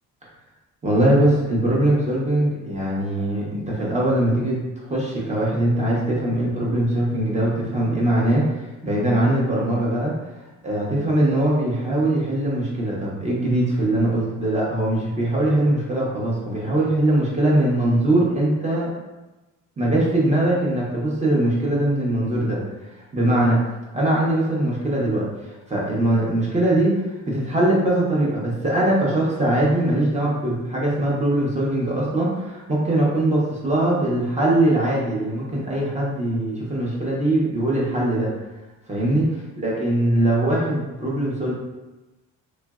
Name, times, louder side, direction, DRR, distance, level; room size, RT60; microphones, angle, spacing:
voice 1, 0.8-4.6 4.9-10.1 10.6-18.9 19.8-22.6 23.1-23.6 23.9-25.3 25.7-38.3 38.9-39.3 39.6-41.5, right 1 dB, 20° right, -4 dB, 0.8 m, -21 dB
3.1 x 2.5 x 2.4 m, 1.1 s
cardioid pair, 115°, 32 cm